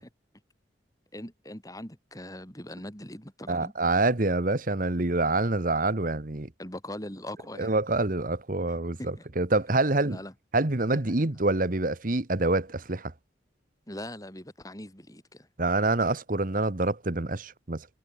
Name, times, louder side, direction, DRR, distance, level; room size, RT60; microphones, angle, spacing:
voice 1, 1.1-3.7 6.6-7.7 9.0-9.1 10.1-10.3 13.9-15.5, left 1 dB, 20° left, 6.8 m, -41 dB
voice 2, 3.5-6.5 7.6-10.2 10.5-13.1 15.6-17.9, right 2 dB, 45° right, 1.3 m, -26 dB
head